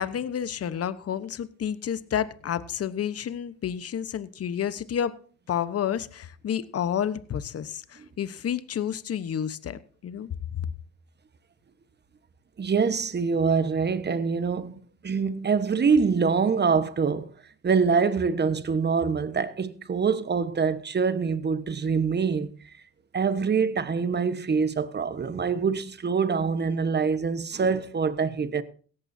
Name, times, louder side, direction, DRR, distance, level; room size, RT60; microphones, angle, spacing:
voice 1, 0.0-5.2 5.5-10.6, left 9 dB, 50° left, 1.1 m, -30 dB
voice 2, 12.6-14.7 15.0-17.3 17.6-22.5 23.1-28.6, right 5 dB, 35° right, 1.3 m, -25 dB
17.0 x 14.5 x 2.7 m
cardioid pair, 90°, 30 cm